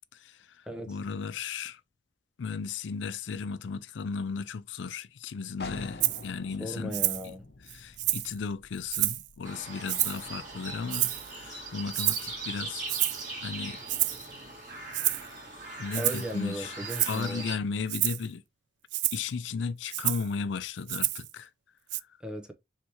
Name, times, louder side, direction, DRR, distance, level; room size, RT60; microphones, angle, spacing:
voice 1, 0.1-1.8 2.4-6.9 7.7-12.9 13.4-13.8 15.8-16.7 17.1-18.4 19.1-21.5, left 5 dB, 90° left, 0.4 m, -35 dB
voice 2, 0.7-1.0 6.6-7.5 15.9-17.4 22.2-22.5, equal, 5° right, 0.5 m, -36 dB
sound 1, 5.6-11.1, left 3 dB, 60° left, 0.7 m, -46 dB
Rattle (instrument), 6.0-6.2 6.9-7.3 7.7-8.3 8.9-9.3 9.9-10.3 10.9-11.3 11.9-12.3 12.9-13.2 13.9-14.3 14.9-15.3 15.9-16.3 16.9-17.2 17.9-18.2 18.9-19.2 19.9-20.3 20.9-21.3 21.9-22.0, right 17 dB, 75° right, 0.3 m, -29 dB
sound 2, 9.4-17.6, right 3 dB, 45° right, 1.7 m, -40 dB
4.5 x 3.3 x 2.8 m
head